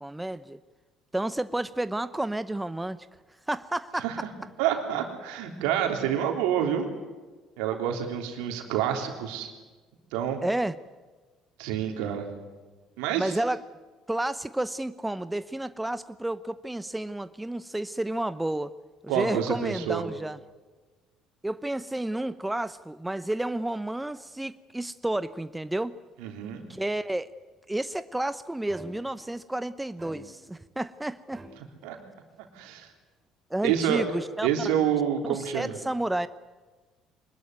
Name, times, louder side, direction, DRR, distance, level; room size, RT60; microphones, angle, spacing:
voice 1, 0.0-0.6 1.1-3.1 3.5-4.3 10.4-10.8 13.2-13.6 14.1-18.7 19.0-20.4 21.4-26.0 26.7-27.3 27.7-31.4 33.5-34.5 35.3-36.3, right 1 dB, 10° right, 14 dB, 0.8 m, -31 dB
voice 2, 4.6-6.9 7.6-9.5 10.1-10.4 11.6-12.3 13.0-13.3 19.1-20.0 26.2-26.6 31.8-32.0 32.5-32.9 33.6-34.0 34.4-35.7, right 9 dB, 75° right, 4 dB, 3.4 m, -28 dB
sound 1, 28.7-29.3 30.0-30.7 31.3-31.5, right 1 dB, 30° right, 7.0 m, -46 dB
23.5 x 20.5 x 9.4 m, 1.3 s
hypercardioid pair, 60°, 0 cm